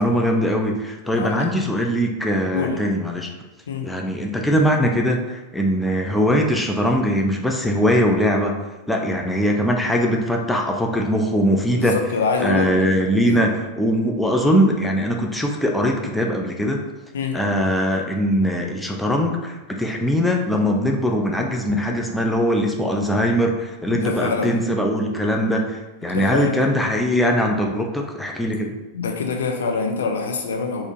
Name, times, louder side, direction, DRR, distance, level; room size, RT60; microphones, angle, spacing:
voice 1, 0.0-3.3 3.8-8.5 8.9-12.0 12.4-16.8 17.3-28.8, equal, 5° left, 1 dB, 0.4 m, -21 dB
voice 2, 1.1-1.5 2.5-2.8 3.7-3.9 11.7-13.4 17.1-17.4 23.9-24.6 26.1-26.6 28.9-30.9, left 4 dB, 65° left, 2 dB, 0.5 m, -25 dB
4.1 x 2.5 x 3.0 m, 1.1 s
figure-of-eight pair, 90°, 0 cm